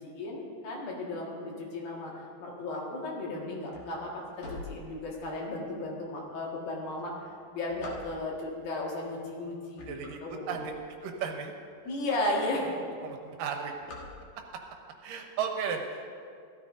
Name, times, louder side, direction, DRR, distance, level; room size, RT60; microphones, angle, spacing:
voice 1, 0.0-7.1 7.5-10.6 11.9-12.8, left 2 dB, 85° left, -3 dB, 3.6 m, -35 dB
sound 1, 3.7-5.5 6.1-6.2 6.8-8.5 9.2-9.4 9.7-11.2 11.7-11.8 12.0-12.1 12.4-12.8 13.0-14.7, left 3 dB, 60° left, 2.7 m, -46 dB
voice 2, 9.9-10.2 10.5-10.7 11.0-11.5 13.0-13.7 15.0-16.2, right 6 dB, 75° right, 4 dB, 2.5 m, -34 dB
16.0 x 13.0 x 2.6 m, 2.2 s
omnidirectional pair, 4.0 m